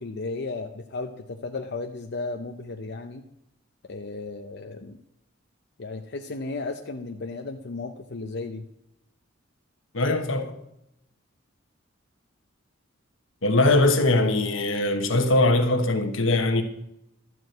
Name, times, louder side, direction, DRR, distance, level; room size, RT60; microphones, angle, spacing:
voice 1, 0.0-3.2 3.9-5.0 5.8-8.6, left 3 dB, 60° left, 0.7 m, -34 dB
voice 2, 9.9-10.6 13.4-16.6, left 2 dB, 80° left, 1.2 m, -21 dB
12.5 x 4.8 x 7.9 m
head